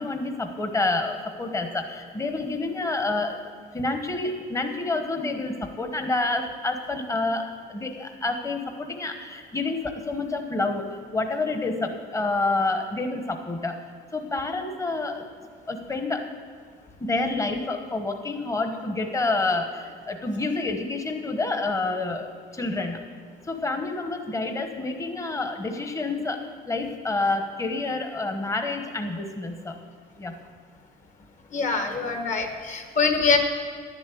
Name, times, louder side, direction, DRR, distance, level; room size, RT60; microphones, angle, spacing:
voice 1, 0.0-3.4 3.7-13.8 14.1-15.2 15.7-16.3 17.0-23.0 23.5-29.8 30.2-30.4, left 2 dB, 20° left, 5 dB, 1.1 m, -28 dB
voice 2, 31.5-33.4, left 4 dB, 45° left, 5 dB, 1.7 m, -24 dB
11.0 x 7.4 x 8.3 m, 2.1 s
cardioid pair, 110°, 17 cm